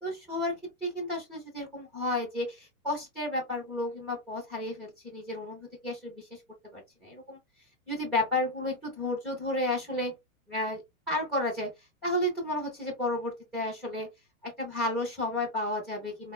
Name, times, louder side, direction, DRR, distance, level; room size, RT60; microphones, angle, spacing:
voice 1, 0.0-6.4 6.7-7.4 7.9-10.1 10.5-10.8 11.1-14.1 14.4-16.3, left 1 dB, ahead, 0.3 m, -32 dB
3.7 x 2.1 x 2.2 m
hypercardioid pair, 130°, 43 cm